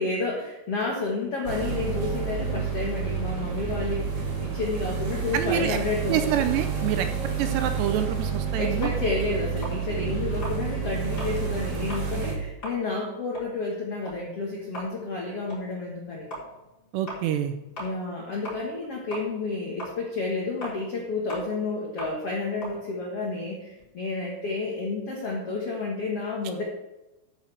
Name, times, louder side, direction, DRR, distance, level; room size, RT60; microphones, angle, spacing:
voice 1, 0.0-6.4 8.6-16.3 17.8-26.6, left 3 dB, 75° left, -2 dB, 1.4 m, -30 dB
sound 1, 1.5-12.3, right 6 dB, 55° right, 3.0 m, -29 dB
voice 2, 5.3-5.8 6.1-7.1 7.4-8.9 16.9-17.6, right 10 dB, 80° right, 7 dB, 2.7 m, -26 dB
sound 2, 8.8-11.4 11.8-12.1 12.5-18.9 19.1-23.9, right 1 dB, 20° left, 4.0 m, -40 dB
12.5 x 8.9 x 3.4 m, 0.97 s
omnidirectional pair, 5.3 m